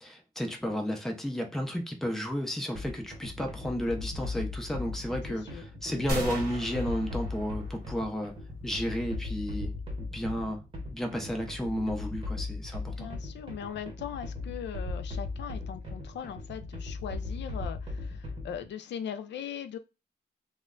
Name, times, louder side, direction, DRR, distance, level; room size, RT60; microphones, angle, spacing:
voice 1, 0.0-8.3 8.6-9.7 10.0-13.1, equal, ahead, 0.5 m, -33 dB
sound 1, 2.7-18.7, left 3 dB, 30° right, 0.8 m, -38 dB
voice 2, 5.3-5.6 5.9-6.0 12.9-19.8, left 8 dB, 80° left, 0.4 m, -40 dB
sound 2, 6.1-8.0, right 1 dB, 55° right, 1.0 m, -37 dB
2.2 x 2.1 x 3.5 m
wide cardioid pair, 160°, 18 cm